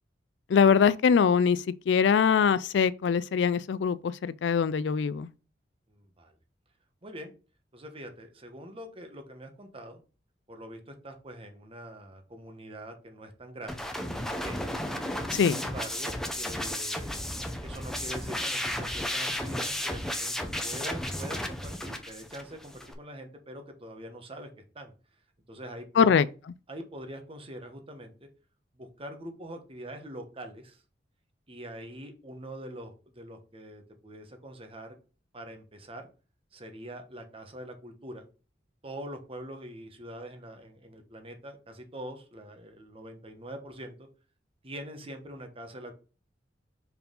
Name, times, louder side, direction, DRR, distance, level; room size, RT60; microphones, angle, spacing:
voice 1, 0.5-5.3 15.3-15.6 26.0-26.3, left 6 dB, 70° left, 0.4 m, -23 dB
voice 2, 5.9-6.3 7.0-7.3 7.7-10.0 10.5-14.8 15.3-20.3 20.6-24.5 24.7-24.9 25.5-26.2 26.7-28.3 28.7-30.8 31.5-34.9 35.3-36.1 36.5-38.3 38.8-44.1 44.6-45.9, right 1 dB, 30° right, 1.2 m, -44 dB
sound 1, 13.7-22.9, left 1 dB, 5° left, 0.7 m, -33 dB
5.4 x 4.6 x 3.8 m
head